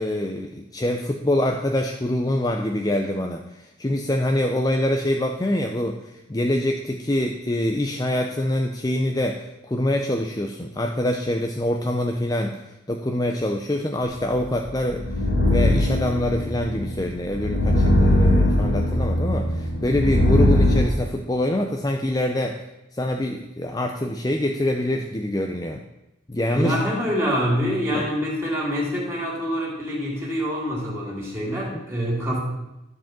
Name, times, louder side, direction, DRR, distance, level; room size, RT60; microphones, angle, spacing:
voice 1, 0.0-12.6 12.9-15.0 15.4-22.6 22.9-25.8 26.3-26.9 27.9-28.0 31.7-31.8, left 1 dB, 20° left, 3 dB, 0.6 m, -25 dB
sound 1, 14.4-20.8, left 1 dB, 60° left, 2.3 m, -20 dB
voice 2, 26.5-32.4, equal, 10° right, -4 dB, 3.1 m, -25 dB
13.0 x 4.8 x 7.5 m, 0.92 s
head